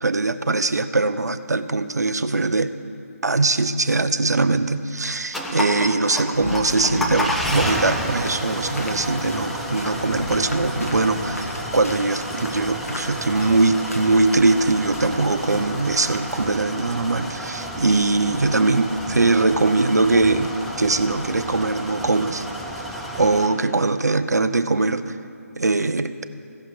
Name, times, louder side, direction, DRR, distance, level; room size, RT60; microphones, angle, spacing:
voice 1, 0.0-2.7 3.2-20.5 20.8-22.5 22.9-25.1 25.6-26.1, right 3 dB, 80° right, 11 dB, 0.6 m, -21 dB
sound 1, 5.3-23.5, equal, ahead, 0.4 m, -31 dB
sound 2, 6.3-16.5, left 2 dB, 60° left, 1.4 m, -35 dB
16.0 x 5.7 x 4.8 m, 2.4 s
figure-of-eight pair, 150°, 9 cm